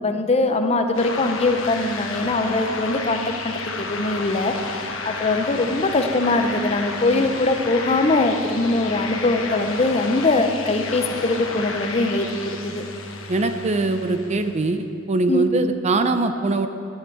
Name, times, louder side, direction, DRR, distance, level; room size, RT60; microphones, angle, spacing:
voice 1, 0.0-12.8 15.3-15.5, left 2 dB, 30° left, 7 dB, 0.7 m, -22 dB
sound 1, 0.9-14.6, left 3 dB, 80° left, 1.1 m, -32 dB
voice 2, 13.3-16.7, right 3 dB, 35° right, 8 dB, 0.5 m, -22 dB
10.5 x 8.0 x 7.7 m, 2.6 s
head